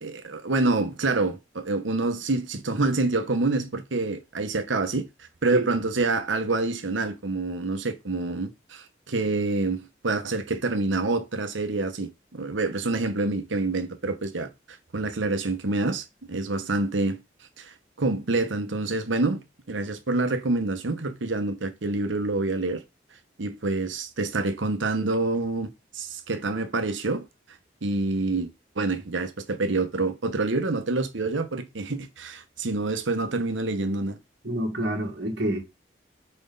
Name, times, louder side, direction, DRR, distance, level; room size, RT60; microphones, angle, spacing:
voice 1, 0.0-14.5 14.9-17.2 17.6-19.4 19.7-22.8 23.4-27.2 27.8-34.2, right 3 dB, 85° right, 1.0 m, -27 dB
voice 2, 34.4-35.6, right 1 dB, 65° right, 1.9 m, -27 dB
4.5 x 4.4 x 5.3 m
head